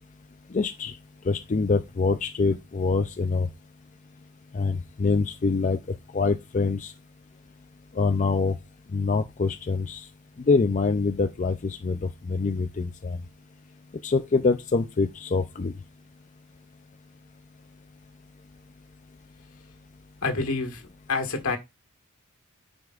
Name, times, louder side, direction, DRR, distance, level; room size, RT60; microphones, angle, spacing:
voice 1, 0.5-1.0 1.3-3.5 4.5-5.8 6.1-6.9 8.0-8.5 8.9-10.1 10.5-12.0 12.3-13.2 14.0-15.7, left 4 dB, 35° left, 0.4 m, -25 dB
voice 2, 20.2-21.6, left 3 dB, 80° left, 1.6 m, -28 dB
9.4 x 5.2 x 2.4 m
head